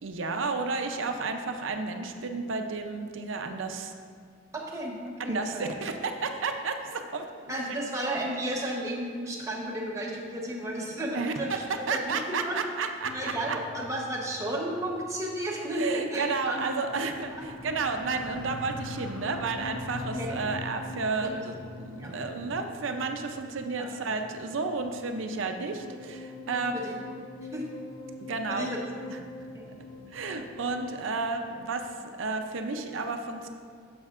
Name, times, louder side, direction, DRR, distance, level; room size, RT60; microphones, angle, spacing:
voice 1, 0.0-3.9 5.2-7.5 11.1-11.3 11.7-13.6 15.8-26.8 28.2-28.7 29.1-29.2 30.1-33.5, right 4 dB, 85° right, 5 dB, 0.6 m, -32 dB
voice 2, 4.5-5.7 7.5-12.6 13.0-16.8 17.4-17.5 20.1-20.5 21.2-21.4 22.0-22.2 23.8-23.9 26.6-27.0 27.5-27.6 28.5-28.8 29.1-29.2 29.5-29.6, right 1 dB, 15° right, -3 dB, 0.9 m, -33 dB
sound 1, 13.0-31.9, left 2 dB, 80° left, 0.5 m, -44 dB
sound 2, 16.7-22.3, equal, 5° left, 0.4 m, -50 dB
9.6 x 7.0 x 2.5 m, 2.1 s
head